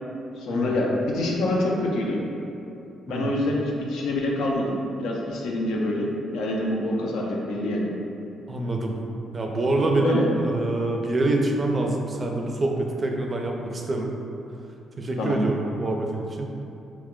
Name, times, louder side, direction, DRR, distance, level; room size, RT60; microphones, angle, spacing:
voice 1, 0.4-2.2 3.1-6.1 6.3-7.9 10.0-10.3 15.2-15.4, left 1 dB, 80° left, -2 dB, 0.5 m, -26 dB
voice 2, 3.1-3.4 8.5-8.9 9.3-14.1 15.0-16.5, right 2 dB, 30° right, 1 dB, 0.4 m, -26 dB
2.9 x 2.2 x 3.6 m, 2.7 s
cardioid pair, 90°, 0 cm